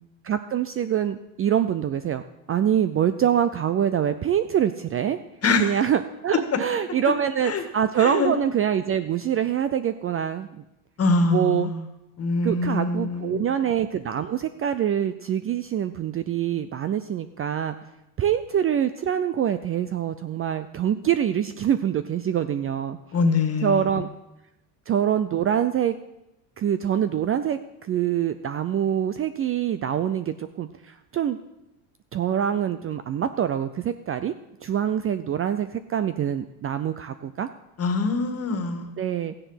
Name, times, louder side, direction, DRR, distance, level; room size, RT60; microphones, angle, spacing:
voice 1, 0.2-2.2 2.5-5.2 5.6-10.6 11.2-11.7 12.4-17.7 18.2-23.0 23.6-24.1 24.9-25.9 26.6-31.4 32.1-34.3 34.6-37.5 39.0-39.3, right 9 dB, 30° right, 12 dB, 0.5 m, -25 dB
voice 2, 8.0-8.3 11.0-11.8 12.2-13.5 23.1-24.0 37.8-38.9, left 3 dB, 30° left, 7 dB, 1.8 m, -24 dB
14.0 x 9.9 x 5.7 m, 0.92 s
cardioid pair, 115°, 45 cm